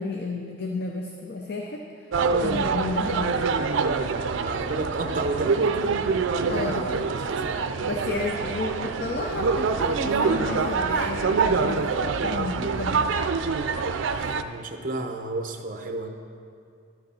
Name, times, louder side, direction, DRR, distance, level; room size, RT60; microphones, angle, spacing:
voice 1, 0.0-1.8 2.3-3.6 6.5-7.3 7.6-13.4 14.1-14.4, left 2 dB, 55° left, 2 dB, 0.6 m, -32 dB
sound 1, 2.1-14.4, right 4 dB, 85° right, 0.4 m, -25 dB
voice 2, 4.4-6.0 7.3-7.5 14.4-16.1, right 2 dB, 45° right, 5 dB, 0.8 m, -31 dB
12.0 x 7.9 x 4.2 m, 2.4 s
head